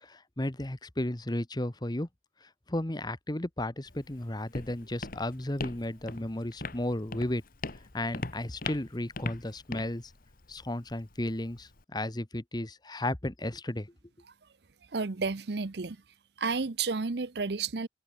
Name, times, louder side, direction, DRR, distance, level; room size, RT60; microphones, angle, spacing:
voice 1, 0.0-2.1 2.7-7.4 7.9-10.1 10.5-13.9, left 1 dB, 25° left, 1.2 m, -34 dB
Walk footsteps, 3.9-11.8, left 3 dB, 50° left, 1.6 m, -41 dB
voice 2, 14.9-16.0 16.4-17.9, right 4 dB, 60° right, 0.8 m, -31 dB
head